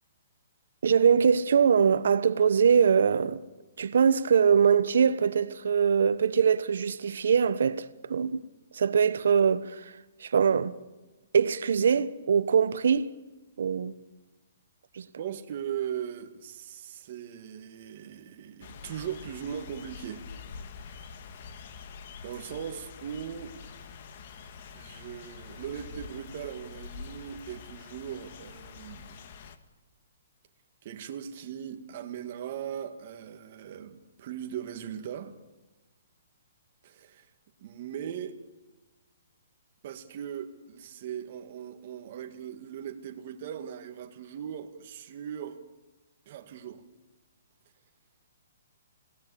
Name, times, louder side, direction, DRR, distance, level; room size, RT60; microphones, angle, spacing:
voice 1, 0.8-3.4 3.8-8.4 8.7-9.8 10.2-10.7 11.3-13.1 13.6-13.9 15.0-15.1, right 7 dB, 70° right, 1.2 m, -23 dB
voice 2, 15.2-20.2 22.2-23.5 24.7-29.2 30.8-35.4 36.8-37.3 37.6-38.4 39.8-45.6 46.3-46.8, right 9 dB, 35° right, 2.0 m, -39 dB
sound 1, 18.6-29.6, left 6 dB, 40° left, 1.9 m, -46 dB
27.0 x 18.5 x 8.5 m
hypercardioid pair, 170°, 0 cm